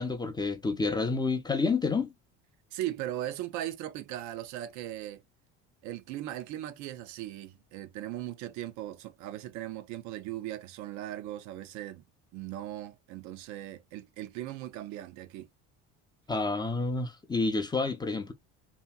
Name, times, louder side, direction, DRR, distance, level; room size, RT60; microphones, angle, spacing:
voice 1, 0.0-2.1 16.3-18.3, left 3 dB, 15° left, 0.4 m, -29 dB
voice 2, 2.7-5.2 5.8-12.1 12.3-15.5, right 13 dB, 65° right, 0.5 m, -38 dB
2.8 x 2.6 x 2.2 m
supercardioid pair, 95°, 32 cm